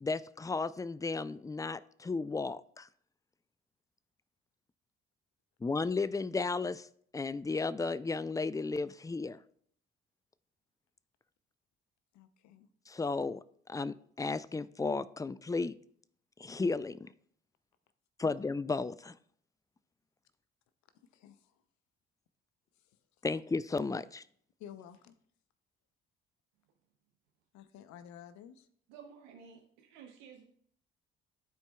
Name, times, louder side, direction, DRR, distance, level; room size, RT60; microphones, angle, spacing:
voice 1, 0.0-2.9 5.6-6.9 7.1-9.4 12.9-13.4 13.7-15.8 16.4-17.1 18.2-19.2 23.2-24.2, left 3 dB, 10° left, 0.3 m, -34 dB
voice 2, 12.1-12.7 18.2-18.3 21.1-21.5 24.6-25.2 27.5-28.7, left 9 dB, 65° left, 0.7 m, -52 dB
voice 3, 28.9-30.4, right 6 dB, 80° right, 0.8 m, -53 dB
13.0 x 4.5 x 2.3 m
hypercardioid pair, 50°, 30 cm